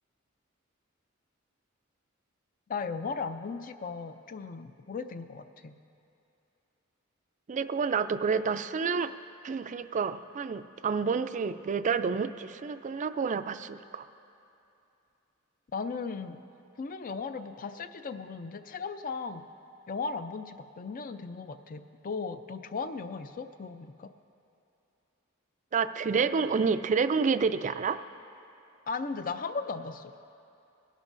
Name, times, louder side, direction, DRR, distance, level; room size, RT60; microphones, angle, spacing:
voice 1, 2.7-5.7 15.7-16.4 16.8-19.4 19.9-24.1 28.9-30.1, left 4 dB, 40° left, 10 dB, 0.5 m, -36 dB
voice 2, 7.5-9.1 9.4-14.1 25.7-28.0, right 5 dB, 35° right, 11 dB, 0.4 m, -29 dB
21.5 x 11.5 x 2.6 m, 2.7 s
head